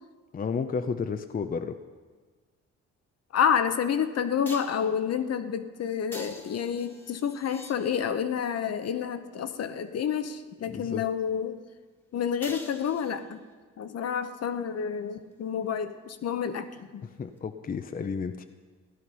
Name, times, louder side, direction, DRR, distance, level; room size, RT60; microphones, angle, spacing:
voice 1, 0.3-1.8 10.7-11.0 17.2-18.4, left 5 dB, 30° left, 9 dB, 0.6 m, -32 dB
voice 2, 3.3-11.6 12.1-13.4 13.8-17.1, left 7 dB, 55° left, 10 dB, 0.9 m, -29 dB
sound 1, 3.4-3.5 4.4-4.9 6.1-8.3 12.4-13.5 17.4-17.5, left 1 dB, 5° left, 1.6 m, -45 dB
14.5 x 11.0 x 5.5 m, 1.4 s
cardioid pair, 90°, 30 cm